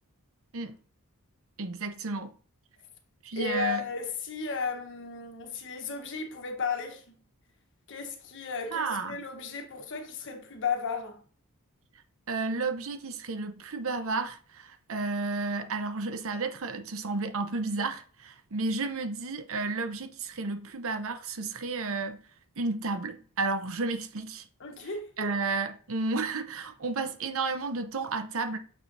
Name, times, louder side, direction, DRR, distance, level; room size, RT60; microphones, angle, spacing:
voice 1, 1.6-2.3 3.2-3.8 8.7-9.2 12.3-22.2 22.6-24.4 25.2-28.6, right 3 dB, 65° right, 0.8 m, -32 dB
voice 2, 3.3-7.2 7.9-11.2 24.6-25.3, left 5 dB, 55° left, 1.1 m, -34 dB
6.5 x 6.1 x 2.7 m
head